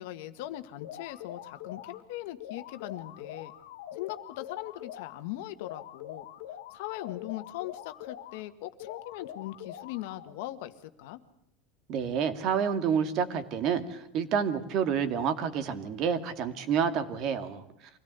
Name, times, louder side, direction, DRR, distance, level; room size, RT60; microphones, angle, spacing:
voice 1, 0.0-3.5 3.9-6.2 6.7-11.2, left 15 dB, 70° left, 10 dB, 1.6 m, -40 dB
sound 1, 0.8-2.0 2.4-5.2 5.6-8.4 8.8-10.4, left 11 dB, 90° left, 1.7 m, -44 dB
voice 2, 11.9-17.6, right 7 dB, 45° right, 10 dB, 2.2 m, -29 dB
25.0 x 17.0 x 8.2 m, 0.81 s
supercardioid pair, 155°, 0 cm